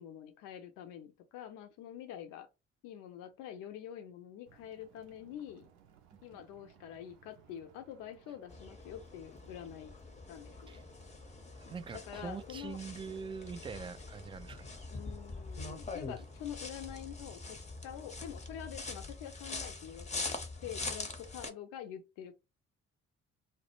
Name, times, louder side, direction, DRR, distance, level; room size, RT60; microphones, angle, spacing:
voice 1, 0.0-2.5 2.8-5.7 6.2-9.9 10.3-10.8 11.7-12.8 14.9-17.6 17.8-22.4, left 10 dB, 65° left, 0.5 m, -46 dB
sound 1, 4.4-18.7, right 8 dB, 80° right, 0.5 m, -64 dB
sound 2, 8.5-21.5, left 3 dB, 20° left, 0.6 m, -44 dB
voice 2, 11.5-14.7, right 5 dB, 15° right, 0.3 m, -43 dB
2.1 x 2.0 x 2.9 m
figure-of-eight pair, 45°, 35 cm